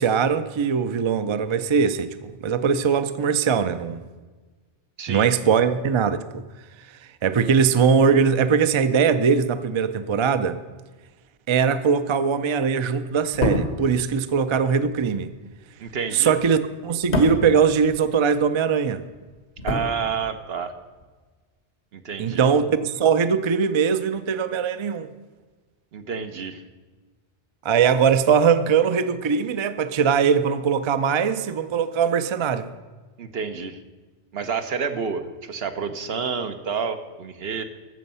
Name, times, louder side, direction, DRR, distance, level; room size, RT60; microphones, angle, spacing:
voice 1, 0.0-4.0 5.1-6.4 7.2-10.6 11.5-15.3 16.1-19.0 22.2-25.1 27.6-32.7, right 6 dB, 50° right, 11 dB, 0.3 m, -21 dB
voice 2, 5.0-5.3 15.8-16.3 19.6-20.7 21.9-22.4 25.9-26.6 33.2-33.8 34.3-37.6, right 6 dB, 65° right, 8 dB, 1.1 m, -29 dB
sound 1, 13.2-18.5 18.8-20.6 20.9-21.1, left 1 dB, 75° left, 1.9 m, -30 dB
14.5 x 6.4 x 5.5 m, 1.4 s
omnidirectional pair, 1.1 m